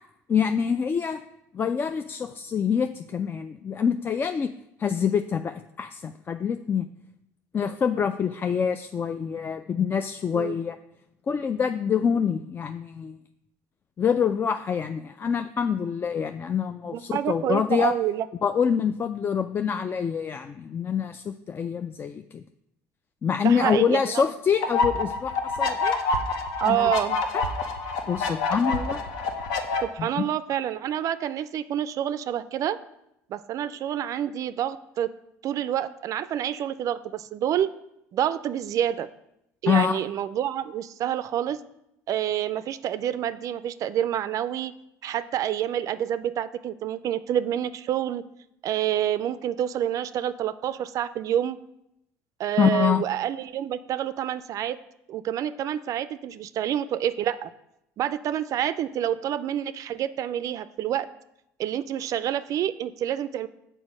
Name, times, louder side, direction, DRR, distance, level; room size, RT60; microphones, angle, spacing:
voice 1, 0.3-1.2 1.5-4.5 4.8-6.9 7.5-10.8 11.3-13.2 14.0-17.9 18.4-22.4 23.2-26.0 26.7-26.9 28.1-29.0 30.0-30.3 39.7-40.0 52.6-53.0, left 7 dB, 30° left, 9 dB, 0.3 m, -26 dB
voice 2, 16.9-18.3 23.4-24.2 26.6-27.2 29.8-32.8 33.3-35.1 35.4-37.7 38.1-39.1 39.6-41.6 42.1-44.7 45.0-48.2 48.6-51.6 52.4-54.8 55.1-57.5 58.0-61.1 61.6-63.5, right 10 dB, 50° right, 14 dB, 0.4 m, -28 dB
sound 1, 24.6-29.8, left 3 dB, 75° left, 0.8 m, -27 dB
6.3 x 4.4 x 6.1 m, 0.83 s
supercardioid pair, 80°, 7 cm